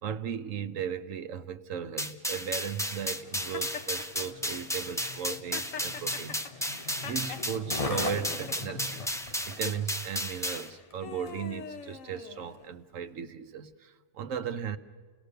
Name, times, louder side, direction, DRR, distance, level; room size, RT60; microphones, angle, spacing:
voice 1, 0.0-14.8, right 8 dB, 85° right, 9 dB, 1.3 m, -37 dB
sound 1, 2.0-10.7, equal, 5° left, 0.5 m, -34 dB
Skateboard, 2.8-11.6 12.2-12.3, left 3 dB, 30° left, 0.9 m, -42 dB
Laughter, 3.5-4.3 5.1-7.5 8.0-8.8 9.5-9.8 10.5-12.8, left 6 dB, 85° left, 1.3 m, -42 dB
29.0 x 18.5 x 6.7 m, 1.4 s
omnidirectional pair, 1.3 m